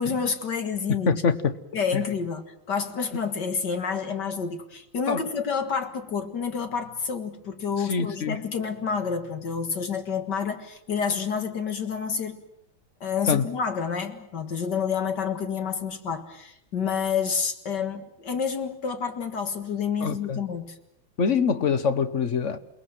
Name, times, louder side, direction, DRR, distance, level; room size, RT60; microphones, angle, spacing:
voice 1, 0.0-1.1 1.7-12.4 13.0-20.8, left 6 dB, 60° left, 8 dB, 2.3 m, -29 dB
voice 2, 1.1-1.6 1.9-2.0 5.1-5.2 7.8-8.4 13.3-13.5 20.0-20.4 21.2-22.6, left 6 dB, 45° left, 12 dB, 1.3 m, -24 dB
29.0 x 19.5 x 7.9 m, 0.78 s
omnidirectional pair, 2.2 m